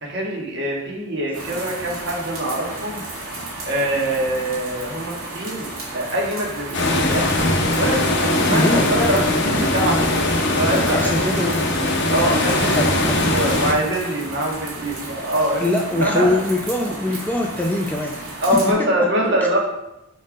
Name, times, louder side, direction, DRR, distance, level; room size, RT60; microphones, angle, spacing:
voice 1, 0.0-3.0 3.7-7.3 7.8-10.2 10.6-11.3 12.1-15.6 16.0-16.4 18.4-19.6, right 1 dB, 50° right, -2 dB, 1.4 m, -24 dB
sound 1, 1.3-18.7, right 2 dB, 75° right, 1.8 m, -33 dB
sound 2, 6.7-13.7, left 2 dB, 55° left, 0.9 m, -20 dB
voice 2, 8.5-8.9 10.9-11.7 12.7-13.2 15.6-18.2 18.5-18.6 19.0-19.1, left 1 dB, 10° left, 1 dB, 0.4 m, -23 dB
5.2 x 4.4 x 4.8 m, 0.90 s
head